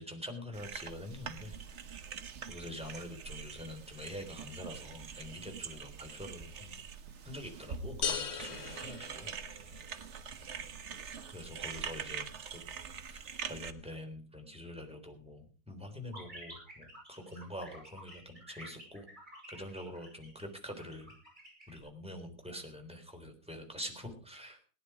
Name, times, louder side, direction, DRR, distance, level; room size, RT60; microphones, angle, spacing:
voice 1, 0.0-1.6 2.4-6.8 7.2-9.3 11.3-12.6 13.1-19.1 19.5-21.1 21.7-24.7, left 1 dB, 5° right, 3 dB, 3.5 m, -45 dB
sound 1, 0.5-13.7, right 6 dB, 45° right, 1.1 m, -44 dB
sound 2, 8.0-9.9, left 7 dB, 85° left, 2.1 m, -38 dB
sound 3, 16.1-21.8, equal, 20° right, 7.6 m, -51 dB
18.0 x 10.5 x 4.9 m, 0.38 s
omnidirectional pair, 2.2 m